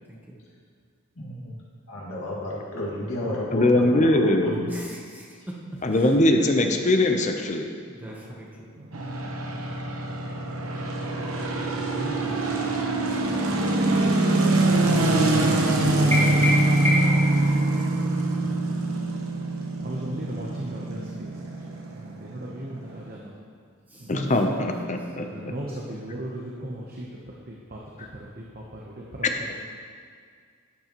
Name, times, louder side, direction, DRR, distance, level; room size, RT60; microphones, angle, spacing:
voice 1, 0.1-0.4 4.7-5.5 6.0-6.1 6.7-6.8 8.0-8.7 13.3-13.7 23.9-24.7, equal, 10° right, -3 dB, 1.0 m, -41 dB
voice 2, 1.2-1.6 1.9-4.8, left 1 dB, 90° left, -5 dB, 2.1 m, -32 dB
voice 3, 3.5-4.7 5.8-7.7 24.1-25.5 28.0-28.1, left 1 dB, 35° left, 4 dB, 0.7 m, -21 dB
voice 4, 8.0-8.3 8.8-9.0 11.7-12.9 19.8-21.5 21.9-23.3 24.0-24.3 25.2-27.1 27.5-29.3, right 1 dB, 45° right, -3 dB, 0.9 m, -38 dB
sound 1, 8.9-23.2, right 2 dB, 90° right, 1.1 m, -24 dB
sound 2, 16.1-17.3, left 1 dB, 15° left, 1.8 m, -25 dB
11.5 x 8.4 x 3.0 m, 2.1 s
head